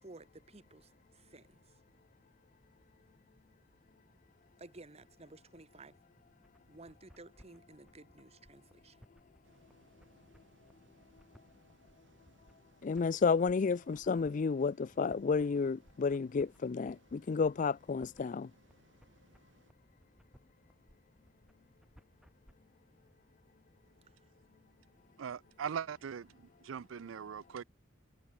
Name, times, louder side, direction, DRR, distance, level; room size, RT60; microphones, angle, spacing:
voice 1, 0.0-1.6 4.6-6.0 6.7-9.0, right 2 dB, 35° right, 1.2 m, -54 dB
sound 1, 6.4-22.5, equal, 5° right, 1.6 m, -63 dB
sound 2, 9.4-19.7, right 1 dB, 70° right, 7.1 m, -68 dB
voice 2, 12.8-18.5, left 5 dB, 40° left, 0.4 m, -31 dB
voice 3, 25.2-27.6, right 7 dB, 85° right, 0.4 m, -41 dB
head